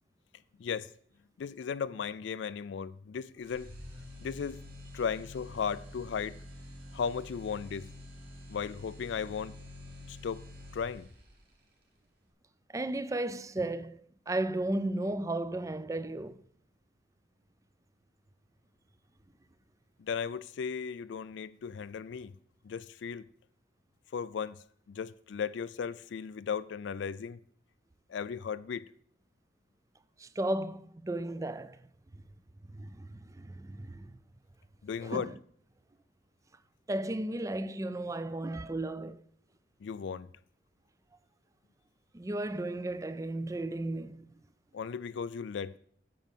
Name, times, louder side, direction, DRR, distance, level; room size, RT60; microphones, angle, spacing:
voice 1, 0.6-0.9 1.4-3.7 4.2-4.6 4.9-6.4 6.9-7.9 8.5-9.6 10.1-10.4 10.7-11.1 20.0-22.3 22.6-23.3 24.1-24.6 24.9-27.4 28.1-28.8 34.8-35.3 39.8-40.3 44.7-45.8, left 6 dB, 70° left, 0.3 m, -36 dB
sound 1, 3.4-11.4, left 1 dB, 55° right, 2.5 m, -48 dB
voice 2, 12.7-16.4 30.2-31.8 32.7-34.1 35.0-35.3 36.9-39.2 42.1-44.3, right 1 dB, 15° right, 0.4 m, -34 dB
9.2 x 6.3 x 7.2 m
head